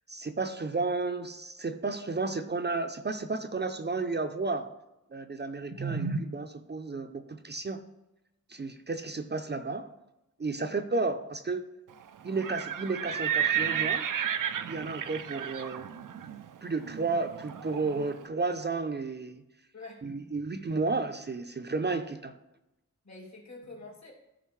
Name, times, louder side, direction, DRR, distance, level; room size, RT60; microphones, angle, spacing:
voice 1, 0.1-4.7 5.1-7.8 8.5-9.9 10.4-11.6 12.2-14.0 14.7-15.9 16.6-19.4 20.0-22.3, right 3 dB, 35° right, 8 dB, 0.5 m, -32 dB
Livestock farm animals working animals, 12.3-18.1, right 9 dB, 85° right, 0.5 m, -32 dB
voice 2, 19.7-20.0 23.0-24.1, left 3 dB, 60° left, -2 dB, 2.4 m, -47 dB
13.5 x 5.0 x 3.2 m, 0.94 s
wide cardioid pair, 95°, 31 cm